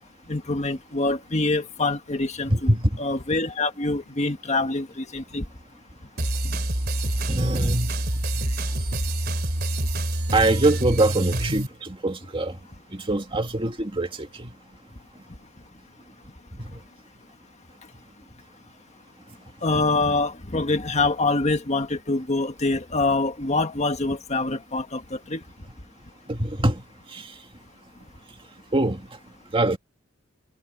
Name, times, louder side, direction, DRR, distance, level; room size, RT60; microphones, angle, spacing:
voice 1, 0.3-5.4 19.6-25.4, left 3 dB, 35° left, 1.7 m, -25 dB
voice 2, 2.5-3.0 7.3-7.9 10.3-12.6 12.9-14.5 16.7-16.8 19.7-19.8 26.3-26.8 27.1-27.3 28.7-29.1 29.5-29.8, right 2 dB, 25° right, 2.0 m, -23 dB
sound 1, 6.2-11.7, right 1 dB, 50° right, 3.6 m, -26 dB
head